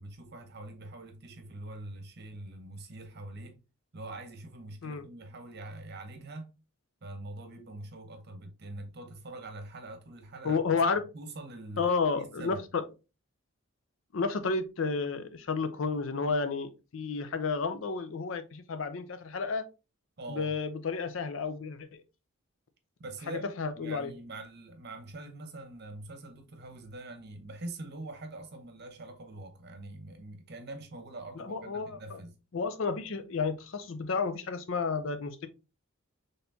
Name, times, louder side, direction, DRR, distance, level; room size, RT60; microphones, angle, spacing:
voice 1, 0.0-3.6 3.9-6.5 7.0-10.6 11.1-12.6 20.2-20.5 23.0-32.4, right 2 dB, 55° right, 0.9 m, -44 dB
voice 2, 10.4-11.0 11.8-12.8 14.1-19.6 20.3-22.0 23.3-24.1 31.4-32.2 32.5-35.5, left 4 dB, 70° left, 0.5 m, -31 dB
4.3 x 3.3 x 2.7 m
head